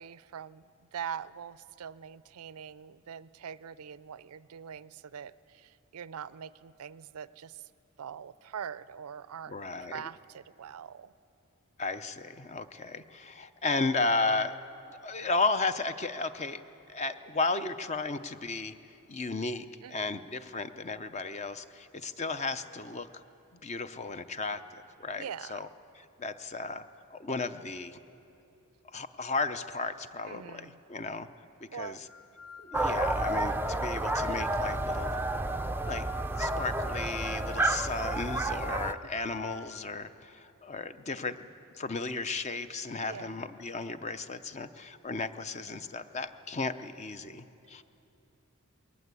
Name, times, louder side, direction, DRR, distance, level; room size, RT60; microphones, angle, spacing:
voice 1, 0.0-7.6 8.0-11.1 19.8-20.2 25.2-25.7 30.2-30.8 31.7-32.0 32.9-33.0 39.0-39.1 41.3-41.4 43.0-43.5, right 8 dB, 85° right, 18 dB, 0.5 m, -43 dB
voice 2, 9.5-10.0 11.8-14.6 14.9-16.6 16.9-18.7 19.1-23.1 23.5-25.7 26.0-26.8 27.1-28.0 28.9-31.3 31.6-32.0 32.6-35.2 35.8-36.1 36.4-41.5 41.8-47.8, left 3 dB, 30° left, 11 dB, 0.6 m, -34 dB
sound 1, 32.1-39.8, left 6 dB, 80° left, 0.7 m, -48 dB
sound 2, 32.7-38.9, right 2 dB, 10° right, 0.4 m, -30 dB
21.0 x 19.0 x 8.3 m, 2.8 s
head